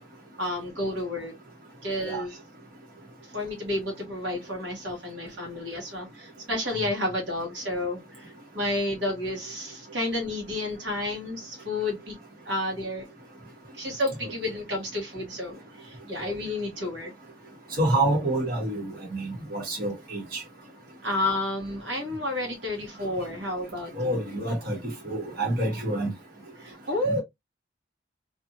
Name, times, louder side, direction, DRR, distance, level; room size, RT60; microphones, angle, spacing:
voice 1, 0.4-1.3 1.8-2.4 3.3-12.2 12.4-13.0 13.8-17.1 21.0-24.2 26.6-27.2, left 1 dB, 75° right, 1.3 m, -31 dB
voice 2, 17.8-20.4 23.9-26.1 27.1-27.2, right 1 dB, 55° right, 1.2 m, -28 dB
2.6 x 2.5 x 2.7 m
head